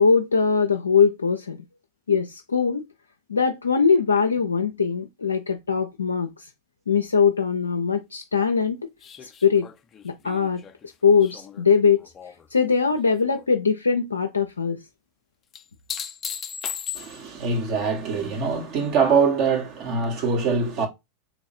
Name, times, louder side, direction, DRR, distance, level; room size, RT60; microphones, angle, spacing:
voice 1, 0.0-1.6 2.1-2.9 3.3-6.5 6.9-8.9 9.2-9.7 10.0-10.6 11.0-12.1 12.5-14.8, left 5 dB, 85° left, 0.4 m, -21 dB
sound 1, 9.0-12.5 12.8-13.4 15.5-17.4 20.0-20.1, left 8 dB, 30° left, 0.5 m, -37 dB
voice 2, 16.9-20.9, right 5 dB, 50° right, 1.5 m, -23 dB
3.1 x 2.7 x 4.3 m
hypercardioid pair, 90°, 0 cm